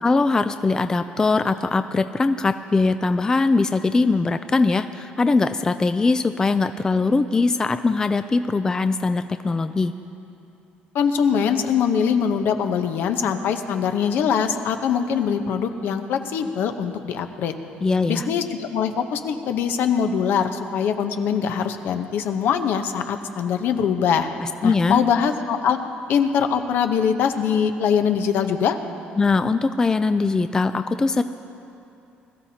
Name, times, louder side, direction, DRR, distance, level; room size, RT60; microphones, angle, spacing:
voice 1, 0.0-9.9 17.8-18.3 24.4-25.0 29.2-31.2, left 3 dB, 20° left, 10 dB, 0.3 m, -21 dB
voice 2, 10.9-17.5 18.1-24.3 24.6-25.8 26.1-28.8, left 7 dB, 70° left, 7 dB, 0.8 m, -22 dB
21.0 x 13.0 x 2.8 m, 2.7 s
cardioid pair, 125°, 4 cm